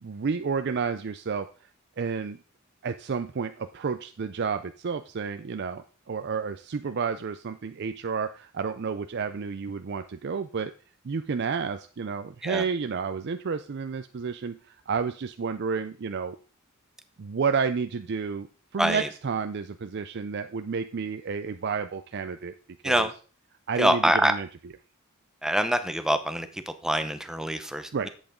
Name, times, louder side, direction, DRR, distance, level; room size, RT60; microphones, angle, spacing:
voice 1, 0.0-1.5 2.0-2.4 2.8-10.7 11.0-16.4 17.2-18.5 18.7-22.5 22.8-23.1 23.7-24.5 27.9-28.1, right 5 dB, 55° right, 9 dB, 0.5 m, -30 dB
voice 2, 18.8-19.1 22.8-23.1 23.8-24.3 25.4-28.1, equal, 5° right, 9 dB, 0.8 m, -25 dB
10.5 x 8.2 x 3.7 m, 0.38 s
head